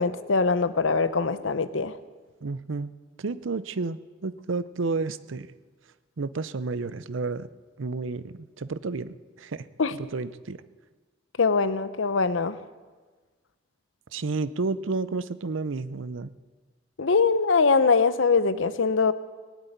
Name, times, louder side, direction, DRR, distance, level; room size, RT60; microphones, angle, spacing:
voice 1, 0.0-2.0 9.8-9.9 11.4-12.6 17.0-19.1, left 4 dB, 85° left, 13 dB, 0.7 m, -22 dB
voice 2, 2.4-2.9 3.2-5.5 6.2-7.5 7.8-9.7 10.0-10.6 14.1-16.3, right 3 dB, 85° right, 15 dB, 0.6 m, -31 dB
19.0 x 8.2 x 9.3 m, 1.4 s
head